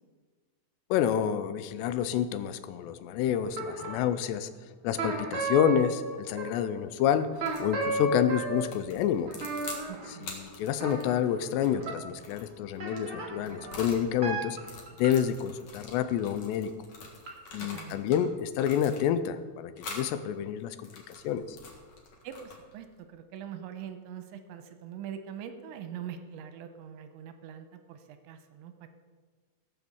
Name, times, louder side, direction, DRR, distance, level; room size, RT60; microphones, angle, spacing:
voice 1, 0.9-4.5 4.8-7.3 7.6-9.3 10.2-14.6 15.0-16.7 17.5-21.6, left 9 dB, 80° left, 11 dB, 2.6 m, -28 dB
sound 1, 3.5-4.2 5.0-6.8 7.4-12.0 12.8-15.1 17.3-17.4, right 2 dB, 35° right, 2.4 m, -35 dB
sound 2, 7.4-7.7 8.6-9.9 10.2-14.1 14.5-18.2 18.5-19.3 19.8-20.1 20.7-22.8, left 3 dB, 55° left, 2.3 m, -45 dB
voice 2, 9.9-10.3 17.7-18.1 22.2-28.9, right 9 dB, 90° right, 8 dB, 3.1 m, -43 dB
17.0 x 6.2 x 7.1 m, 1.5 s
omnidirectional pair, 5.3 m